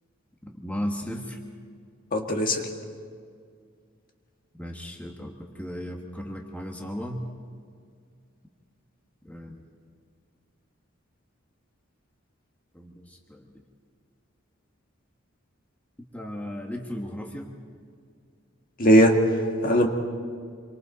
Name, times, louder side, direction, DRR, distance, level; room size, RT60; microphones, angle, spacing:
voice 1, 0.4-1.4 4.5-7.2 9.2-9.6 12.7-13.5 16.1-17.6, equal, 5° left, 1 dB, 1.3 m, -35 dB
voice 2, 2.1-2.7 18.8-19.9, equal, 45° left, 3 dB, 1.8 m, -20 dB
27.0 x 24.0 x 4.1 m, 2.1 s
head